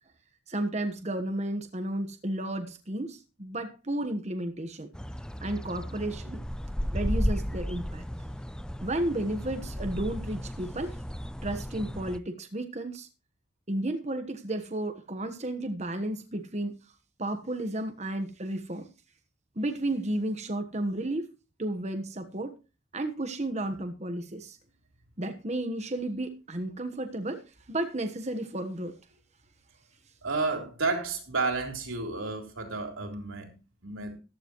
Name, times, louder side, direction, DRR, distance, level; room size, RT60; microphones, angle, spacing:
voice 1, 0.5-4.9 5.4-6.4 6.9-8.0 8.8-11.0 11.4-13.1 13.7-16.7 17.2-18.9 19.6-21.3 21.6-22.5 22.9-24.6 25.2-29.0, right 1 dB, 35° right, 1.2 m, -33 dB
sound 1, 4.9-12.2, equal, 5° left, 0.5 m, -34 dB
voice 2, 30.2-34.2, right 3 dB, 90° right, 3.6 m, -31 dB
15.0 x 12.0 x 3.1 m
head